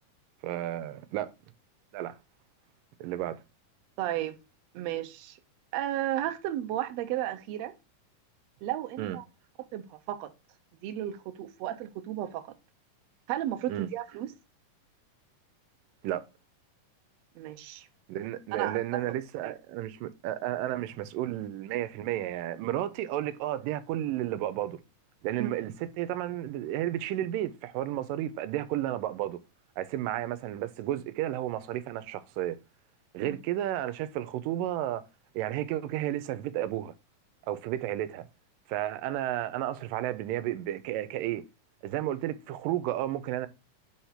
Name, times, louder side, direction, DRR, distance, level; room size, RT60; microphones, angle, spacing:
voice 1, 0.4-1.3 1.9-2.2 3.0-3.4 9.0-9.2 13.7-13.9 16.0-16.3 18.1-24.8 25.2-29.4 29.8-32.6 33.1-35.0 35.4-36.9 37.5-38.3 38.7-41.4 41.8-43.5, right 13 dB, 90° right, 2.3 m, -32 dB
voice 2, 4.0-4.4 4.7-5.4 5.7-7.7 8.6-9.2 9.7-10.3 10.8-12.5 13.3-14.3 17.4-17.9 18.5-18.8 19.4-19.5 25.4-25.5 33.2-33.4, right 13 dB, 70° right, 1.6 m, -33 dB
4.9 x 4.5 x 5.6 m
omnidirectional pair, 3.8 m